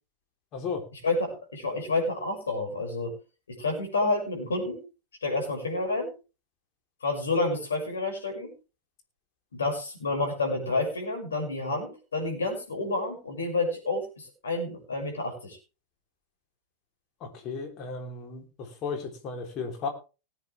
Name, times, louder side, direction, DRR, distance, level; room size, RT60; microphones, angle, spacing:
voice 1, 0.5-0.8 17.2-19.9, left 5 dB, 35° left, 4 dB, 3.5 m, -35 dB
voice 2, 1.0-3.1 3.5-4.8 5.2-6.1 7.0-8.5 9.5-15.6, left 2 dB, 70° left, 3 dB, 6.3 m, -29 dB
19.5 x 8.8 x 3.5 m, 0.32 s
figure-of-eight pair, 90°, 0 cm